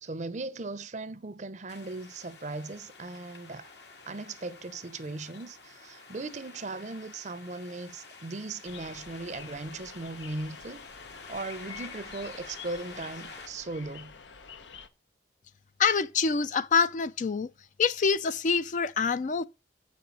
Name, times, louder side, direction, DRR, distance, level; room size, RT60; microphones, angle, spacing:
voice 1, 0.0-3.7 4.1-10.9 11.3-14.1, right 2 dB, 40° right, 0.6 m, -38 dB
sound 1, 1.7-13.5, left 4 dB, 70° left, 1.6 m, -49 dB
sound 2, 8.6-14.9, left 6 dB, 90° left, 0.9 m, -47 dB
voice 2, 15.8-17.5 17.8-19.4, left 5 dB, 45° left, 0.4 m, -26 dB
7.6 x 5.3 x 5.8 m
head